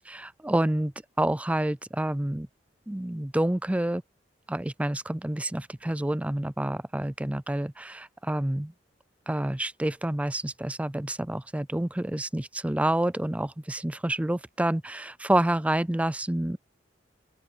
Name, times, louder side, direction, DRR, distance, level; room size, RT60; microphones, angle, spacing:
voice 1, 0.1-2.5 2.9-4.0 4.5-8.7 9.3-16.6, right 1 dB, 5° right, 0.4 m, -28 dB
open air
head